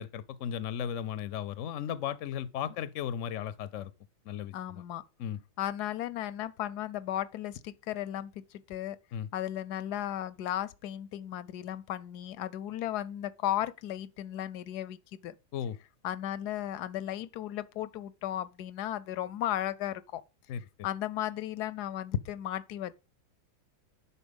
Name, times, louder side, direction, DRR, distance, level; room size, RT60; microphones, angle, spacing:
voice 1, 0.0-3.9 4.3-4.8 5.2-5.4 9.1-9.3 15.5-15.8 20.5-20.6, left 9 dB, 65° left, 0.8 m, -35 dB
voice 2, 4.5-5.0 5.6-9.0 9.3-15.3 16.0-20.2 20.8-22.9, left 12 dB, 85° left, 1.2 m, -35 dB
11.0 x 4.3 x 5.3 m
omnidirectional pair, 1.7 m